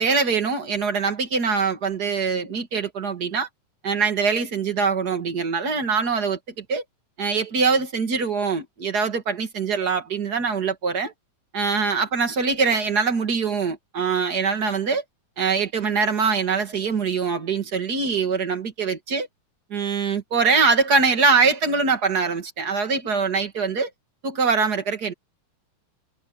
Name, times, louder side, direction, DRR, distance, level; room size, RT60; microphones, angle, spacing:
voice 1, 0.0-3.5 3.8-6.8 7.2-11.1 11.5-15.0 15.4-19.3 19.7-23.9 24.2-25.1, right 5 dB, 35° right, 2.3 m, -23 dB
omnidirectional pair, 3.4 m